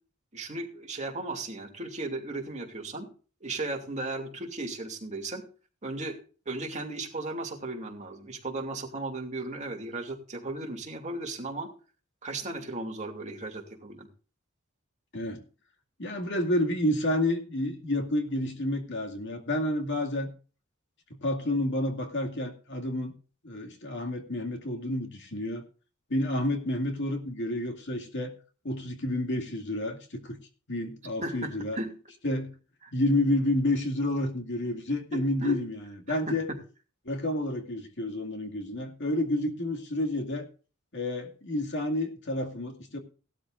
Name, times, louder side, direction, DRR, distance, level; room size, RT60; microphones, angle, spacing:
voice 1, 0.3-3.1 3.4-5.4 5.8-6.2 6.5-11.7 12.2-14.1 31.2-31.9 32.8-32.9 35.1-35.6 36.1-36.6, right 2 dB, 35° right, 2 dB, 2.6 m, -36 dB
voice 2, 16.0-20.3 21.2-23.1 23.4-25.6 26.1-28.4 28.6-30.4 30.7-31.8 32.2-32.5 32.9-36.5 37.1-40.5 40.9-43.0, left 1 dB, 60° left, 3 dB, 2.3 m, -30 dB
17.5 x 12.5 x 2.5 m, 0.37 s
head